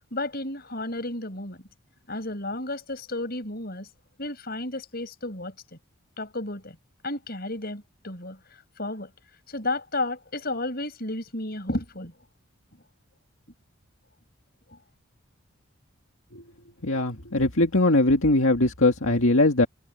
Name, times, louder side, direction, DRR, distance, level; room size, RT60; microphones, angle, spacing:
voice 1, 0.1-1.6 2.1-3.9 4.2-5.8 6.2-6.8 7.0-8.4 8.8-9.1 9.5-12.1 14.7-14.8, left 2 dB, 45° left, 6.4 m, -32 dB
voice 2, 16.8-19.7, left 2 dB, 70° left, 2.1 m, -21 dB
head